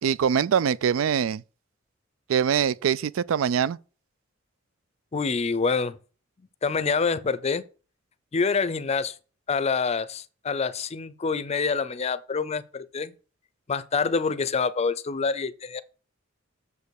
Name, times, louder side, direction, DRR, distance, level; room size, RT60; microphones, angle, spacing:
voice 1, 0.0-1.4 2.3-3.8, right 8 dB, 90° right, 0.4 m, -23 dB
voice 2, 5.1-6.0 6.6-7.6 8.3-9.1 9.5-13.1 13.7-15.8, left 5 dB, 30° left, 0.5 m, -26 dB
6.8 x 5.2 x 6.5 m
head